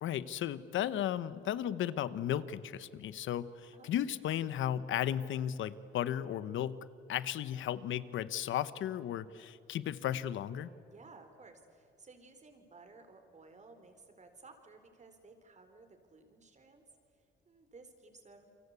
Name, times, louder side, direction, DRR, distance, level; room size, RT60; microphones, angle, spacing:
voice 1, 0.0-10.7, left 10 dB, 75° left, 16 dB, 1.1 m, -35 dB
voice 2, 10.9-16.8 17.1-18.5, right 3 dB, 35° right, 7 dB, 4.5 m, -57 dB
29.5 x 24.0 x 8.4 m, 2.5 s
cardioid pair, 90°, 20 cm